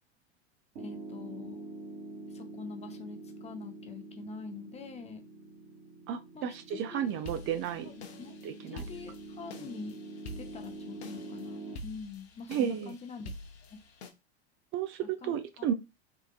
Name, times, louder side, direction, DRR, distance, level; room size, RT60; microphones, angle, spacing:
Piano, 0.7-11.8, right 2 dB, 60° right, 1.8 m, -46 dB
voice 1, 0.8-1.7 2.3-5.2 6.3-7.1 7.8-8.3 8.7-9.9 10.4-13.3 13.6-13.8 15.2-15.7, left 4 dB, 20° left, 0.5 m, -45 dB
voice 2, 6.1-7.9 8.4-8.9 12.5-12.9 14.7-15.7, right 9 dB, 40° right, 0.5 m, -33 dB
sound 1, 7.1-14.1, left 1 dB, 75° left, 0.7 m, -47 dB
3.7 x 2.6 x 2.4 m
hypercardioid pair, 85°, 32 cm